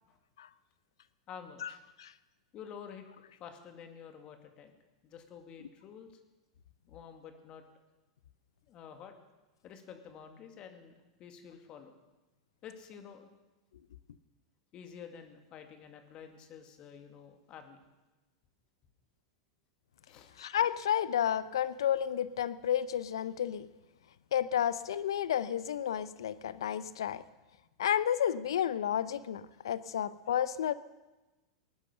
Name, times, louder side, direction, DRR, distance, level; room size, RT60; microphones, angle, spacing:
voice 1, 1.3-1.9 2.5-4.8 5.0-6.2 6.9-7.6 8.6-9.1 9.6-10.9 11.2-11.9 12.6-13.3 14.7-17.8 20.0-20.3, left 7 dB, 40° left, 6 dB, 2.2 m, -50 dB
voice 2, 20.4-23.7 24.3-27.2 27.8-30.7, left 9 dB, 75° left, 16 dB, 0.7 m, -31 dB
18.5 x 9.9 x 6.7 m, 1.1 s
hypercardioid pair, 100°, 3 cm